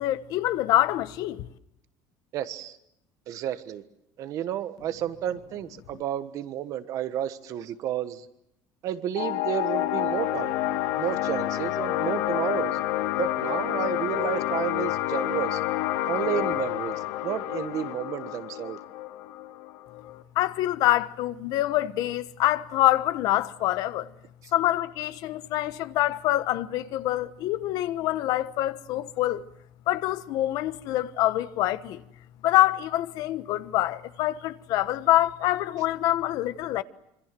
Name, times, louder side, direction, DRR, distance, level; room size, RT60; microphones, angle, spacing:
voice 1, 0.0-1.5 20.3-24.1 24.5-29.4 29.9-32.0 32.4-36.8, left 14 dB, 50° left, 1.2 m, -25 dB
voice 2, 2.3-2.8 3.3-3.8 4.2-8.3 8.8-10.6 10.9-12.8 13.2-15.6 16.1-18.8, right 11 dB, 40° right, 1.3 m, -31 dB
sound 1, 9.1-20.2, left 14 dB, 85° left, 2.4 m, -29 dB
26.5 x 25.5 x 7.6 m
cardioid pair, 180°, 9 cm